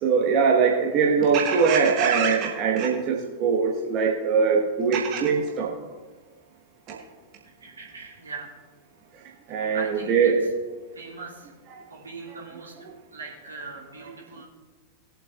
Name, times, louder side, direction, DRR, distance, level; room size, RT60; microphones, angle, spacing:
voice 1, 0.0-5.7 6.9-7.0 9.5-10.4 11.7-11.8, right 5 dB, 40° right, -2 dB, 1.4 m, -22 dB
voice 2, 7.4-8.5 9.5-10.3 10.9-11.5 11.9-12.7 13.1-14.5, right 3 dB, 75° right, -3 dB, 2.7 m, -40 dB
20.5 x 7.8 x 2.5 m, 1.3 s
figure-of-eight pair, 90°, 0 cm